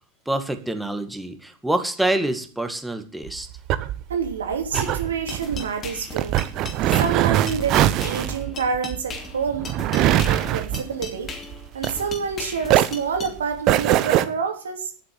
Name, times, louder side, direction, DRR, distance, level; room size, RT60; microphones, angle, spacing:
voice 1, 0.3-3.5, right 1 dB, 5° right, 7 dB, 2.0 m, -26 dB
sound 1, 3.2-12.3 12.6-14.2, right 13 dB, 40° right, 1.0 m, -22 dB
voice 2, 4.1-6.4 7.0-11.3 11.7-14.9, right 6 dB, 70° right, 4 dB, 2.9 m, -28 dB
sound 2, 4.7-13.3, left 4 dB, 25° left, 2.8 m, -37 dB
11.0 x 8.8 x 7.7 m, 0.41 s
figure-of-eight pair, 85°, 0 cm